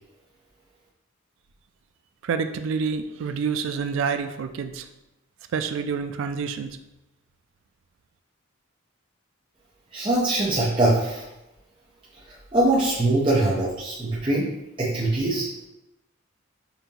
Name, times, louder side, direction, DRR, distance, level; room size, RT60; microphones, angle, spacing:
voice 1, 2.2-4.9 5.5-6.8, right 5 dB, 65° right, 9 dB, 0.3 m, -28 dB
voice 2, 9.9-11.3 12.5-14.5 14.8-15.7, right 2 dB, 25° right, -7 dB, 0.6 m, -22 dB
5.3 x 2.5 x 2.8 m, 0.93 s
head